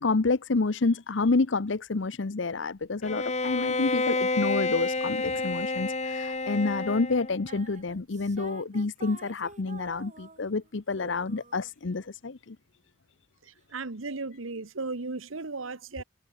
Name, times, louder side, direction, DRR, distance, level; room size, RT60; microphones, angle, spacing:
voice 1, 0.0-12.6, left 3 dB, 65° left, 0.7 m, -28 dB
Bowed string instrument, 3.0-7.4, left 3 dB, 35° left, 2.7 m, -29 dB
sound 1, 7.5-10.7 11.0-12.1, right 3 dB, 35° right, 4.5 m, -48 dB
voice 2, 13.5-16.0, right 3 dB, 85° right, 1.3 m, -36 dB
head